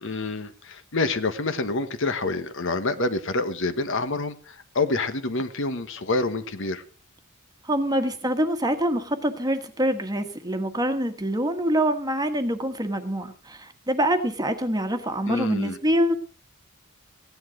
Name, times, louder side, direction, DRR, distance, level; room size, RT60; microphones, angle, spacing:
voice 1, 0.0-6.8 15.3-15.8, left 3 dB, 60° left, 10 dB, 1.3 m, -27 dB
voice 2, 7.6-16.1, right 1 dB, 20° right, 7 dB, 1.4 m, -25 dB
16.5 x 10.5 x 5.1 m, 0.39 s
head